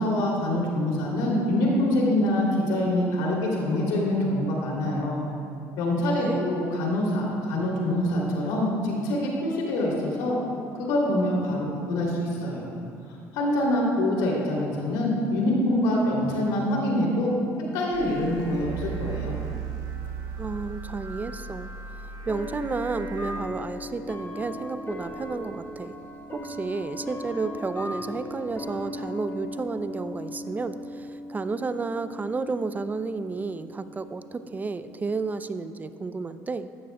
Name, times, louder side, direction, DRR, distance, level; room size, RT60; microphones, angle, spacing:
voice 1, 0.0-5.2 5.8-10.4 10.8-12.7 13.3-17.3 17.7-19.3, left 1 dB, 75° left, -3 dB, 2.8 m, -25 dB
voice 2, 6.2-6.5 20.4-21.7 22.2-26.0 26.3-36.7, right 4 dB, 25° right, 12 dB, 0.5 m, -32 dB
sound 1, 17.9-23.4, right 6 dB, 65° right, 1.9 m, -36 dB
sound 2, 20.0-20.1 21.2-21.3 22.3-35.5, left 1 dB, 30° left, 1.4 m, -38 dB
13.0 x 13.0 x 2.3 m, 2.4 s
supercardioid pair, 80°, 7 cm